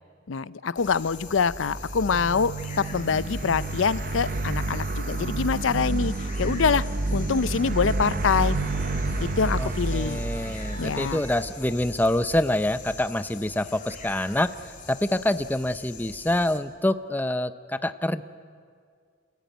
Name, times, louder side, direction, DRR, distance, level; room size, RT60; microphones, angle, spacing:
voice 1, 0.3-6.1 6.4-6.8 7.1-8.6 9.2-10.2 10.8-11.2, left 5 dB, 75° left, 17 dB, 0.5 m, -25 dB
sound 1, 0.8-16.6, left 4 dB, 40° left, 2.4 m, -43 dB
sound 2, 1.6-11.8, right 2 dB, 45° right, 0.8 m, -30 dB
sound 3, 7.9-12.9, right 2 dB, 80° right, 4.0 m, -46 dB
voice 2, 9.6-14.5 14.9-18.2, left 1 dB, 10° left, 12 dB, 0.5 m, -26 dB
30.0 x 14.5 x 9.2 m, 2.2 s
head